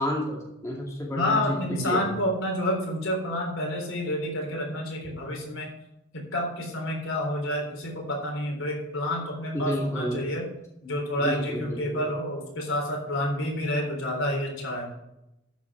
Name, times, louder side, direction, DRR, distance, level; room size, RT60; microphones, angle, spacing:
voice 1, 0.0-2.0 9.5-10.2 11.2-12.0, equal, 15° left, -2 dB, 2.3 m, -30 dB
voice 2, 1.2-5.7 6.1-10.5 10.8-14.9, left 1 dB, 80° left, 1 dB, 3.8 m, -29 dB
13.5 x 5.7 x 6.0 m, 0.88 s
head